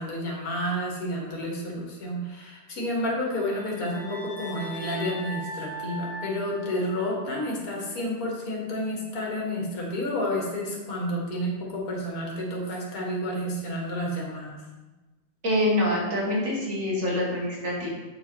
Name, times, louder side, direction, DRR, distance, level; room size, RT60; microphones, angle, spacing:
voice 1, 0.0-14.6, equal, 75° left, -2 dB, 2.0 m, -30 dB
sound 1, 3.2-7.5, equal, 35° right, 1.5 m, -39 dB
voice 2, 15.4-17.9, left 1 dB, 60° right, -6 dB, 2.8 m, -25 dB
8.3 x 4.6 x 4.4 m, 1.1 s
omnidirectional pair, 1.5 m